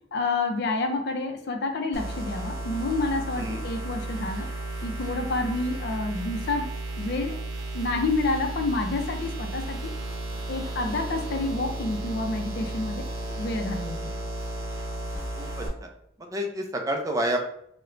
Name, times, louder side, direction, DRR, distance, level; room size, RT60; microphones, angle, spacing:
voice 1, 0.1-4.5 4.8-6.7 7.0-7.4 7.7-9.9 10.5-13.0 13.3-14.1, left 2 dB, 55° left, 4 dB, 0.4 m, -29 dB
sound 1, 1.9-15.7, right 2 dB, 70° right, 0.7 m, -34 dB
voice 2, 3.4-3.7 10.9-11.0 15.4-15.9 16.2-17.4, right 1 dB, 15° right, 3 dB, 0.3 m, -30 dB
4.2 x 2.1 x 2.5 m, 0.72 s
head